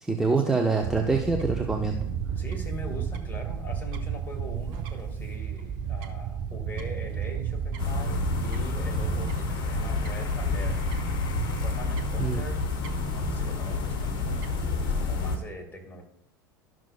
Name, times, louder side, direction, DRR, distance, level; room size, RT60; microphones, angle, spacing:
voice 1, 0.0-2.0 12.2-12.4, right 4 dB, 5° right, 2 dB, 0.7 m, -25 dB
Fowl / Bird, 0.8-15.5, right 8 dB, 50° right, 0.8 m, -33 dB
voice 2, 2.4-11.0 11.6-12.7 13.1-14.5 14.8-16.0, equal, 15° left, 1 dB, 2.1 m, -42 dB
sound 1, 7.8-15.4, left 4 dB, 40° left, 1.2 m, -29 dB
12.0 x 6.1 x 2.4 m, 0.74 s
figure-of-eight pair, 80°, 11 cm